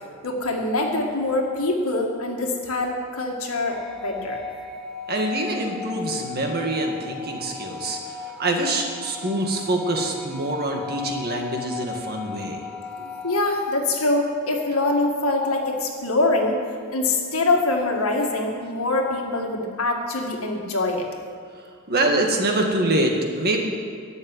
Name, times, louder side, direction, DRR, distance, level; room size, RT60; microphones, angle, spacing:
voice 1, 0.2-4.4 13.2-16.6 16.9-21.1, left 2 dB, 70° left, 1 dB, 1.8 m, -24 dB
sound 1, 3.7-13.4, left 5 dB, ahead, 1.1 m, -37 dB
voice 2, 5.1-8.0 8.4-12.6 13.0-13.1 21.9-23.6, right 1 dB, 45° right, 2 dB, 1.8 m, -25 dB
12.0 x 7.6 x 9.6 m, 2.1 s
head